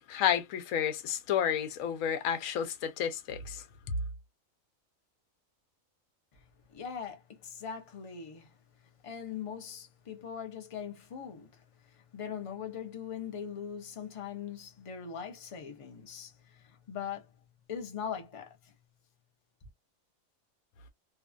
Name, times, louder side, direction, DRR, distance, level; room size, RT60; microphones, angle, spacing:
voice 1, 0.1-3.6, left 9 dB, 75° left, 1.0 m, -31 dB
voice 2, 6.7-8.5 9.0-11.6 12.1-17.3 17.7-18.6, left 7 dB, 35° left, 0.6 m, -41 dB
2.8 x 2.2 x 2.4 m
omnidirectional pair, 1.4 m